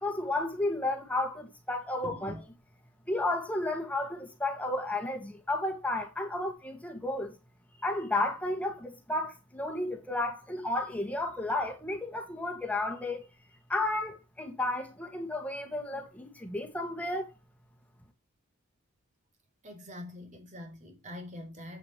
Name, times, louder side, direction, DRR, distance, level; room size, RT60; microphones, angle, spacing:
voice 1, 0.0-2.4 3.1-7.4 7.8-13.3 13.7-17.3, left 2 dB, 5° left, 2.2 m, -32 dB
voice 2, 2.0-2.4 19.6-21.8, left 1 dB, 35° right, 3.9 m, -44 dB
8.6 x 8.0 x 3.3 m
head